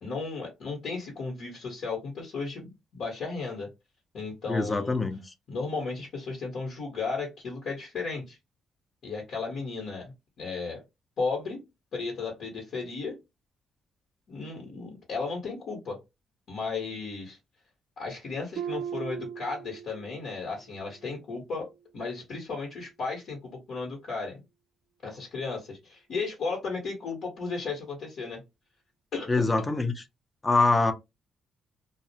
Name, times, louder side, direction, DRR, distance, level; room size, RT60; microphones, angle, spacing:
voice 1, 0.0-3.7 4.1-5.0 5.5-8.4 9.0-10.1 10.4-10.8 11.2-11.6 11.9-13.2 14.3-16.0 16.5-17.4 18.0-24.4 25.0-28.4 29.1-29.3, left 4 dB, 65° left, 1.0 m, -34 dB
voice 2, 4.5-5.2 29.3-29.9 30.4-30.9, left 3 dB, 20° left, 0.5 m, -24 dB
Harp, 18.6-20.3 20.7-21.1 21.6-21.8, right 8 dB, 80° right, 0.3 m, -38 dB
2.4 x 2.0 x 2.7 m
cardioid pair, 90°, 0 cm